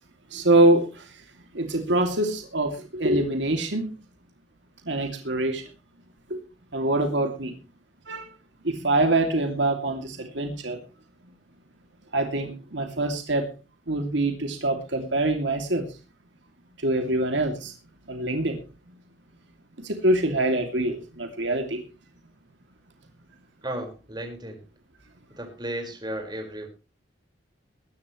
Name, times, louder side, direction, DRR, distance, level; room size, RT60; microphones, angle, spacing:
voice 1, 0.3-1.2 1.5-3.9 4.8-5.6 6.3-6.4 6.7-7.5 8.1-8.3 8.6-10.8 12.1-13.5 13.9-15.8 16.8-17.7 18.1-18.6 19.8-21.8, right 2 dB, 70° right, 2.8 m, -24 dB
voice 2, 23.6-24.6 25.4-26.7, right 1 dB, 20° right, 5.0 m, -34 dB
22.0 x 11.0 x 3.2 m
head